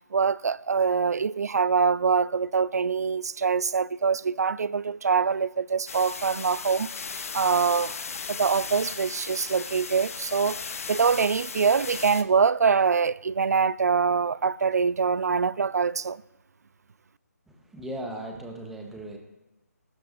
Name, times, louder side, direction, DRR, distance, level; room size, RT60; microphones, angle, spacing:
voice 1, 0.1-8.0 8.3-16.2, right 5 dB, 70° right, 0.4 m, -24 dB
sound 1, 5.9-12.2, left 5 dB, 55° left, 0.8 m, -36 dB
voice 2, 17.5-19.2, right 1 dB, 5° right, 1.1 m, -37 dB
20.0 x 12.0 x 2.6 m
figure-of-eight pair, 155°, 9 cm